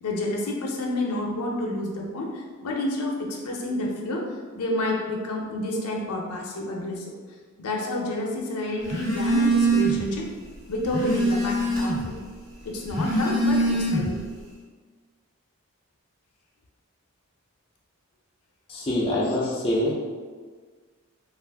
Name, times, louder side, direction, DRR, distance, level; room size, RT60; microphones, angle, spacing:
voice 1, 0.0-4.2 4.5-7.1 7.6-10.3 10.7-12.1 12.6-14.2, left 1 dB, 85° left, -1 dB, 0.5 m, -29 dB
Telephone, 8.8-10.1 10.5-12.1 12.8-14.3, right 2 dB, 65° right, 1.5 m, -24 dB
voice 2, 18.7-19.9, left 1 dB, 25° left, -5 dB, 0.4 m, -25 dB
2.4 x 2.4 x 3.4 m, 1.5 s
head